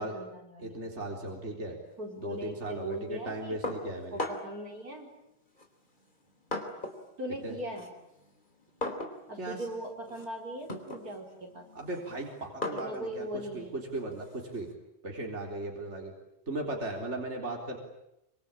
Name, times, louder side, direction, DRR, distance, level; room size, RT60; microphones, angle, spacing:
voice 1, 0.0-0.8 2.0-3.6 3.8-5.1 7.2-7.9 9.3-11.7 12.7-13.7, right 1 dB, 60° right, 1 dB, 5.3 m, -40 dB
voice 2, 0.6-1.8 2.2-4.2 7.4-7.6 9.4-9.6 11.7-13.3 13.5-14.7 15.0-16.1 16.5-17.8, right 2 dB, 40° right, 1 dB, 4.2 m, -37 dB
sound 1, 3.6-4.7 5.6-7.1 7.4-14.7, left 2 dB, 25° left, 3.8 m, -40 dB
26.0 x 25.5 x 8.9 m, 0.86 s
omnidirectional pair, 1.8 m